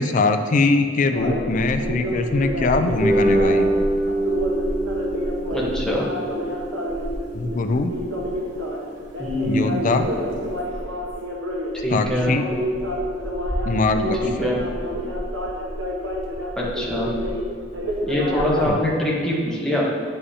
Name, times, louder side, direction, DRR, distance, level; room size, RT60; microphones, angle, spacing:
voice 1, 0.0-3.7 7.3-7.9 9.5-10.1 11.9-12.4 13.7-14.5 18.7-18.8, left 3 dB, 40° left, 8 dB, 0.4 m, -22 dB
sound 1, 1.1-18.7, equal, 80° right, 1.1 m, -28 dB
sound 2, 2.8-9.3, right 1 dB, 40° right, 1.2 m, -26 dB
voice 2, 5.5-6.1 9.2-9.7 11.8-12.3 14.2-14.6 16.6-17.1 18.1-19.9, left 1 dB, 5° left, -5 dB, 1.1 m, -23 dB
9.4 x 5.5 x 2.8 m, 2.1 s
head